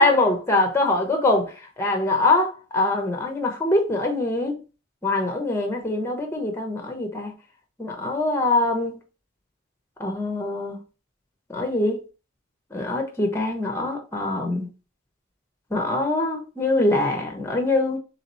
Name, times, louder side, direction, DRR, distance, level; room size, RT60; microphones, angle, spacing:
voice 1, 0.0-1.5 1.8-4.5 5.0-7.3 7.8-9.0 10.0-10.8 11.5-12.0 12.7-14.7 15.7-18.0, left 2 dB, 15° left, 0.7 m, -23 dB
3.3 x 2.9 x 4.1 m
head